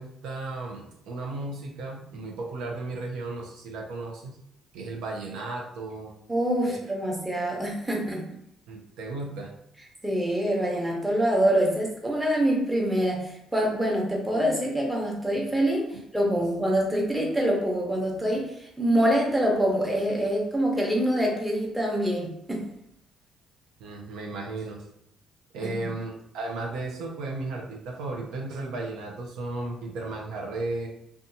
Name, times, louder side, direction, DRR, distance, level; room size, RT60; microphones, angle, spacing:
voice 1, 0.0-4.4 4.7-6.1 6.6-6.8 8.7-9.5 23.8-24.8 25.5-30.9, right 2 dB, 85° right, 0 dB, 0.5 m, -35 dB
voice 2, 6.3-8.3 10.0-22.6 25.6-25.9, right 1 dB, 10° right, -1 dB, 0.8 m, -25 dB
2.6 x 2.3 x 2.7 m, 0.77 s
cardioid pair, 90°, 0 cm